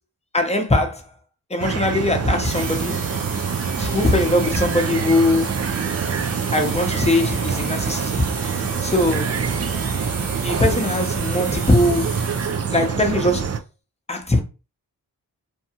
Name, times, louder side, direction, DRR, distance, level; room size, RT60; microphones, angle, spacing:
voice 1, 0.3-1.0 1.5-3.0 3.8-5.6 6.5-8.3 8.8-9.4 10.4-12.2 12.7-13.5 14.1-14.4, left 1 dB, 15° left, 0.8 m, -20 dB
sound 1, 1.6-13.6, right 6 dB, 40° right, 0.4 m, -25 dB
sound 2, 2.4-13.0, right 3 dB, 60° right, 0.9 m, -33 dB
2.7 x 2.3 x 2.8 m
cardioid pair, 45°, 39 cm